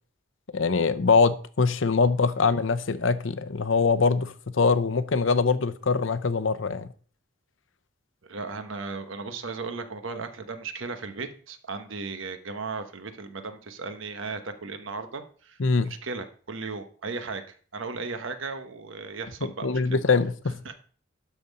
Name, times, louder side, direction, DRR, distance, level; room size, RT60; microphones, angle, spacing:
voice 1, 0.5-6.9 15.6-15.9 19.6-20.6, left 4 dB, 75° left, 12 dB, 0.7 m, -23 dB
voice 2, 8.2-15.6 15.8-17.4 17.7-20.0 20.6-20.7, right 4 dB, 75° right, 8 dB, 1.1 m, -36 dB
12.5 x 4.3 x 5.3 m, 0.44 s
head